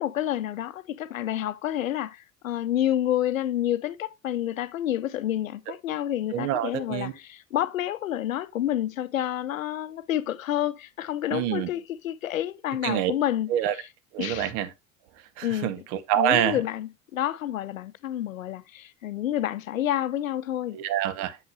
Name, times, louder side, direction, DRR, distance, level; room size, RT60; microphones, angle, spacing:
voice 1, 0.0-13.9 14.2-14.5 15.4-15.7 16.1-20.8, left 12 dB, 80° left, 0.6 m, -29 dB
voice 2, 6.3-7.1 11.3-11.7 12.8-13.1 13.5-13.7 14.1-14.7 15.4-16.6 20.7-21.4, right 11 dB, 55° right, 0.9 m, -26 dB
7.7 x 7.1 x 2.6 m
figure-of-eight pair, 75°, 40 cm